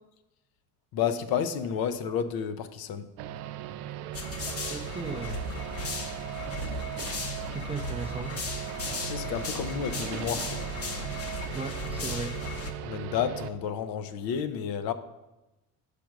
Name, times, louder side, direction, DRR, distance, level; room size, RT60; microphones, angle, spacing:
voice 1, 0.9-3.1 8.9-10.6 12.8-14.9, left 8 dB, 65° left, 11 dB, 0.7 m, -31 dB
sound 1, 3.2-13.5, right 11 dB, 90° right, 0.6 m, -38 dB
sound 2, 4.1-12.7, left 3 dB, 35° left, 0.9 m, -36 dB
voice 2, 4.7-5.4 7.6-8.3 11.5-12.3, right 3 dB, 15° right, 6 dB, 0.4 m, -36 dB
6.3 x 5.1 x 5.9 m, 1.0 s
cardioid pair, 115°, 39 cm